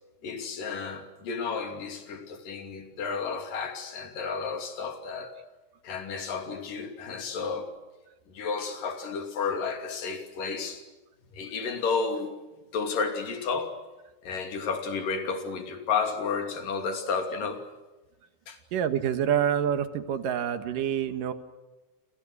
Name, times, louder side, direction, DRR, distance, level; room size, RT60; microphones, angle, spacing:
voice 1, 0.2-5.3 5.8-7.7 8.3-10.8 11.3-12.4 12.7-13.8 14.2-17.6 18.5-18.6, left 5 dB, 80° left, 4.5 m, -32 dB
voice 2, 18.7-21.3, right 9 dB, 85° right, 3.1 m, -27 dB
29.5 x 27.0 x 6.4 m
omnidirectional pair, 3.8 m